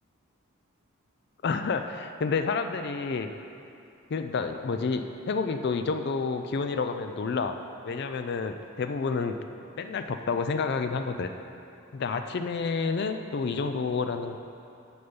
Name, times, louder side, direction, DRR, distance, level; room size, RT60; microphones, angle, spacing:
voice 1, 1.4-3.3 4.1-7.6 7.8-9.4 9.8-11.3 11.9-14.4, left 4 dB, 50° left, 7 dB, 0.3 m, -29 dB
6.6 x 5.5 x 6.9 m, 2.7 s
head